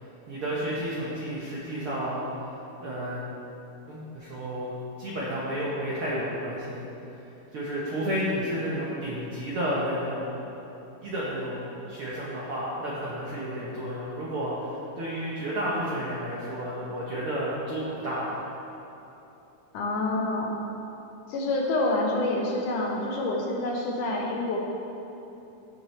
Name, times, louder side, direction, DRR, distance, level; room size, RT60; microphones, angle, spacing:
voice 1, 0.3-2.3 2.8-3.2 3.9-4.7 5.0-6.9 7.5-10.3 11.0-18.4, equal, 65° right, -7 dB, 1.4 m, -31 dB
voice 2, 19.7-20.6 21.3-24.6, left 2 dB, 75° left, -1 dB, 2.3 m, -27 dB
14.5 x 5.9 x 3.2 m, 3.0 s
omnidirectional pair, 3.8 m